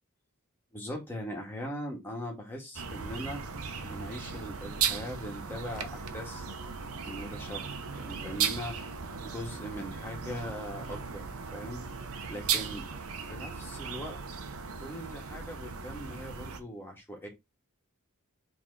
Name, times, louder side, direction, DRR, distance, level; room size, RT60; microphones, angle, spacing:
voice 1, 0.7-3.4 3.8-6.4 7.0-8.8 9.2-11.3 11.5-11.8 12.3-12.9 13.2-14.2 14.8-17.3, equal, 10° left, 2.0 m, -40 dB
sound 1, 2.8-16.6, right 6 dB, 75° right, 1.0 m, -36 dB
6.2 x 3.6 x 4.7 m
head